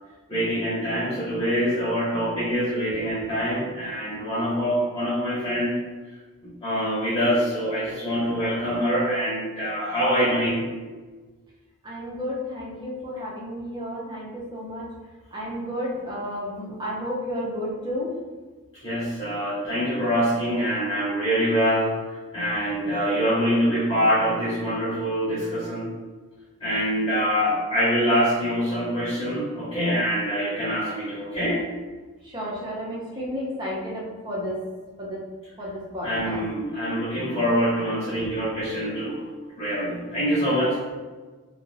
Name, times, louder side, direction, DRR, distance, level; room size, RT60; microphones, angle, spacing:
voice 1, 0.3-5.8 6.4-10.6 18.8-25.9 26.6-31.6 36.0-39.2 39.6-40.9, equal, 20° left, -10 dB, 0.8 m, -25 dB
voice 2, 11.8-14.9 15.3-18.1 32.2-34.6 35.0-35.2 35.6-36.4, equal, 20° right, -5 dB, 0.6 m, -32 dB
2.3 x 2.1 x 3.2 m, 1.3 s
head